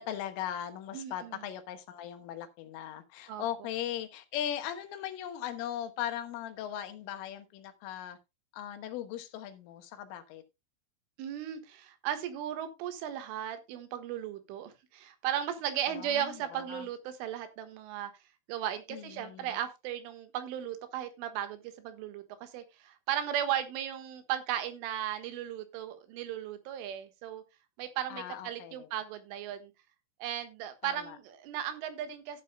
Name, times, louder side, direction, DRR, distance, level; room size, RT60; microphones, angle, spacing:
voice 1, 0.0-8.2 8.5-10.4 15.9-16.9 18.9-19.6 28.1-28.9 30.8-31.2, left 11 dB, 85° left, 3.8 m, -39 dB
voice 2, 0.9-1.4 3.3-3.4 11.2-18.1 18.5-27.4 27.8-29.7 30.2-32.4, right 10 dB, 80° right, 3.8 m, -36 dB
15.0 x 9.2 x 2.2 m
omnidirectional pair, 5.7 m